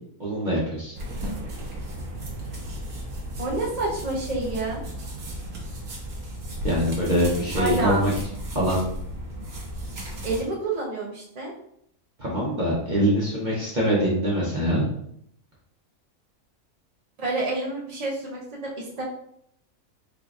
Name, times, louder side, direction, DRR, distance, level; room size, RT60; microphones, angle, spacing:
voice 1, 0.2-1.0 6.6-8.1 8.5-8.8 12.2-14.8, equal, 35° right, -6 dB, 0.9 m, -23 dB
sound 1, 0.9-10.4, equal, 75° right, 1.4 m, -35 dB
voice 2, 3.4-4.8 7.6-8.1 10.2-11.5 17.2-19.0, right 2 dB, 50° right, -3 dB, 0.4 m, -28 dB
3.8 x 3.7 x 2.4 m, 0.71 s
omnidirectional pair, 1.6 m